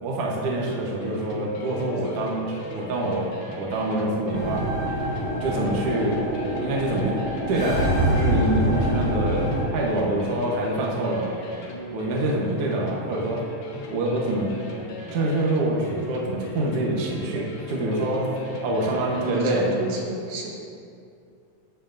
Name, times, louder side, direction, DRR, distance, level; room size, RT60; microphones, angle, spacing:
voice 1, 0.0-4.6 5.4-6.2 6.6-7.2 7.5-11.3 11.9-13.4 13.9-14.5 15.1-18.3 18.6-19.7, right 1 dB, 65° right, -2 dB, 1.5 m, -26 dB
sound 1, 0.6-20.0, equal, 85° left, 1.2 m, -37 dB
sound 2, 4.3-9.6, equal, 50° left, 1.7 m, -25 dB
voice 2, 19.2-20.5, right 2 dB, 80° right, -2 dB, 2.9 m, -33 dB
14.0 x 7.0 x 2.6 m, 2.4 s
omnidirectional pair, 4.0 m